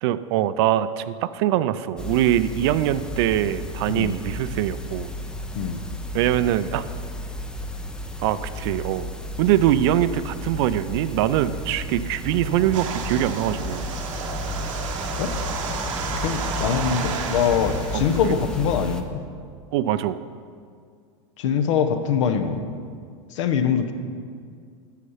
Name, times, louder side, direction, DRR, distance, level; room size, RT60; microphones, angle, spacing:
voice 1, 0.0-5.1 6.1-6.8 8.2-9.1 9.4-13.9 18.2-18.4 19.7-20.2, right 12 dB, 55° right, 14 dB, 0.4 m, -23 dB
sound 1, 2.0-19.0, left 1 dB, 5° left, 0.4 m, -33 dB
sound 2, 12.7-18.6, right 6 dB, 85° right, 1.0 m, -32 dB
voice 2, 16.2-19.2 21.4-22.6 23.3-23.9, left 7 dB, 70° left, 8 dB, 0.8 m, -23 dB
8.2 x 6.7 x 5.6 m, 2.1 s
supercardioid pair, 135°, 16 cm